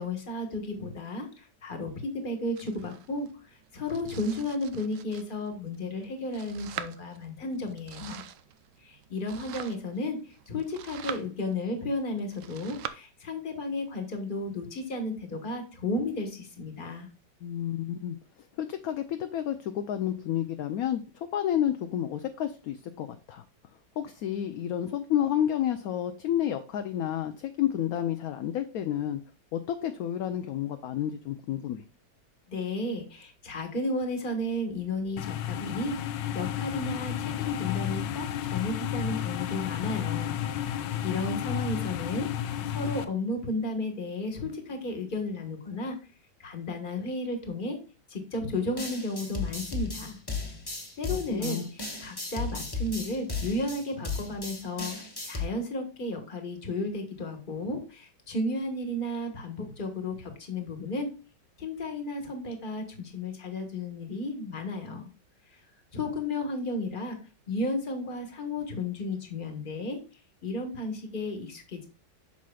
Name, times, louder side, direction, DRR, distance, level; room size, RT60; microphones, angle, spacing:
voice 1, 0.0-8.2 8.8-17.1 32.5-35.9 36.3-40.3 41.0-46.0 46.4-47.8 48.1-50.2 51.0-61.1 61.6-65.1 65.9-67.2 67.5-70.0 70.4-71.9, left 2 dB, 30° left, 5 dB, 1.3 m, -33 dB
Domestic sounds home sounds, 2.5-12.9, right 10 dB, 75° right, 0.7 m, -45 dB
voice 2, 17.4-18.2 18.6-21.0 21.3-23.4 24.0-29.2 29.5-31.8 51.1-51.7, left 10 dB, 70° left, 8 dB, 0.9 m, -30 dB
sound 1, 35.2-43.0, left 10 dB, 90° left, 1.3 m, -32 dB
sound 2, 48.8-55.5, left 4 dB, 15° left, 1.0 m, -35 dB
8.2 x 6.2 x 2.3 m, 0.35 s
omnidirectional pair, 1.9 m